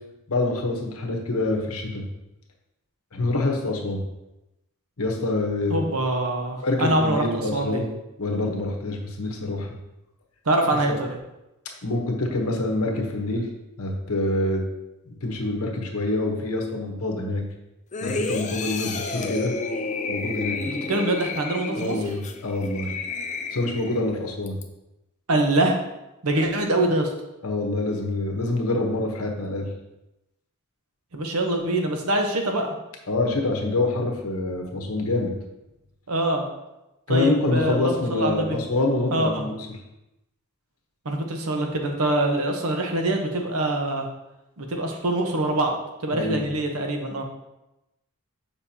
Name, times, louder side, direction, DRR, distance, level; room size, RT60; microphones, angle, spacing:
voice 1, 0.3-2.0 3.1-4.0 5.0-5.9 6.6-7.9 8.2-9.7 10.9-11.0 11.8-13.5 13.8-14.6 15.0-17.4 18.0-19.5 20.1-20.6 21.7-22.9 23.5-24.6 27.4-29.7 33.1-35.3 37.1-39.5 46.1-46.4, left 2 dB, 70° left, 2 dB, 1.1 m, -26 dB
voice 2, 5.7-7.8 10.5-11.1 20.7-21.9 25.3-25.8 26.2-27.1 31.1-32.7 36.1-36.4 37.1-38.6 39.1-39.4 41.0-44.1 44.6-47.2, right 1 dB, 75° right, 3 dB, 1.0 m, -24 dB
sound 1, 17.9-24.0 24.5-24.6, left 3 dB, 35° left, 0.5 m, -31 dB
7.0 x 5.2 x 2.8 m, 0.94 s
head